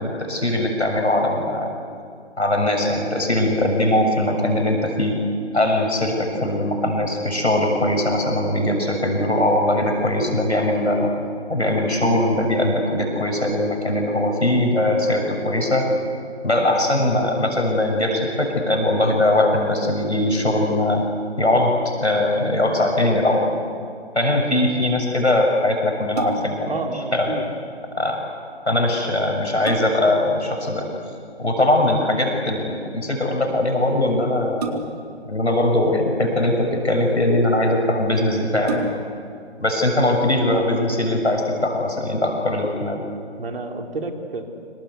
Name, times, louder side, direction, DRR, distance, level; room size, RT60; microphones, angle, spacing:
voice 1, 0.0-1.7 2.4-5.2 5.5-11.1 11.5-15.9 16.4-21.0 21.4-23.5 24.1-26.7 27.1-27.4 28.0-28.2 28.7-30.9 31.4-34.9 35.3-38.9 39.6-43.0, left 1 dB, 80° left, 1 dB, 6.7 m, -21 dB
sound 1, 26.1-26.7 28.7-28.8 29.3-30.2 31.8-32.1 34.6-35.2 36.2-36.9 37.6-37.7 38.0-38.1 38.6-39.3 39.8-39.9, right 4 dB, 35° right, 2.6 m, -31 dB
voice 2, 26.7-27.5 43.4-44.4, right 3 dB, 60° right, 3 dB, 3.6 m, -30 dB
26.5 x 26.0 x 8.3 m, 2.3 s
figure-of-eight pair, 140°, 33 cm